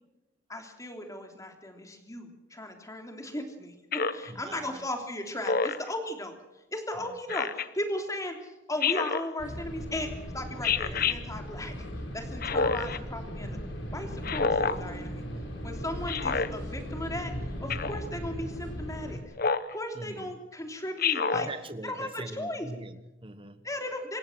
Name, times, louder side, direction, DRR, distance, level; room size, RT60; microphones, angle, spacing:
voice 1, 0.5-6.3 6.7-11.9 12.1-13.6 13.9-15.2 15.6-17.3 17.6-19.2 19.7-21.5 21.8-22.7 23.6-24.2, left 1 dB, 15° left, 4 dB, 3.2 m, -36 dB
Speech synthesizer, 3.9-4.3 5.4-5.9 7.3-7.7 8.8-9.3 10.6-11.2 12.4-13.0 14.2-14.8 16.1-16.5 17.7-18.0 19.4-19.7 21.0-21.5, left 5 dB, 50° left, 1.0 m, -27 dB
voice 2, 4.3-4.9 7.0-7.2 19.9-20.4 21.3-23.7, right 2 dB, 30° right, 11 dB, 1.4 m, -42 dB
sound 1, 9.4-19.2, equal, 70° left, 4.6 m, -38 dB
27.0 x 15.5 x 6.3 m, 1.0 s
head